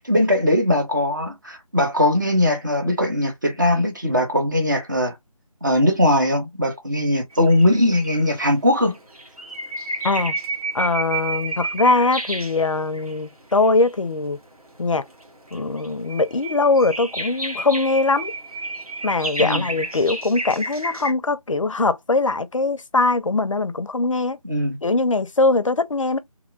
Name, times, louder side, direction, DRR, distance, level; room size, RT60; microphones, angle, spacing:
voice 1, 0.1-5.1 5.6-9.0 19.4-19.7 24.4-24.8, left 1 dB, 30° right, 0.7 m, -20 dB
sound 1, 7.3-8.3 8.9-13.1 13.5-14.1 14.9-21.1, right 2 dB, 75° right, 1.3 m, -31 dB
voice 2, 10.7-14.4 14.8-15.0 15.5-18.3 19.0-24.4 24.8-26.2, left 3 dB, 60° left, 0.5 m, -21 dB
3.0 x 2.2 x 3.7 m
figure-of-eight pair, 165°, 19 cm